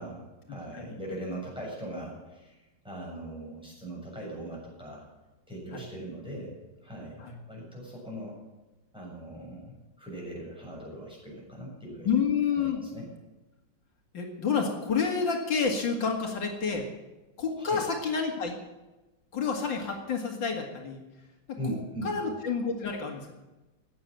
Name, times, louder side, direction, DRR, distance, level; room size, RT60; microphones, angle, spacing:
voice 1, 0.0-2.6 2.8-5.0 5.5-6.5 6.8-8.4 8.9-12.1 12.5-13.1 17.6-17.8 21.6-22.1, right 1 dB, ahead, -4 dB, 7.4 m, -40 dB
voice 2, 12.0-12.8 14.1-16.8 17.4-18.5 19.3-21.0 22.0-23.3, left 5 dB, 80° left, 2 dB, 2.8 m, -29 dB
15.5 x 9.3 x 9.0 m, 1.1 s
omnidirectional pair, 2.0 m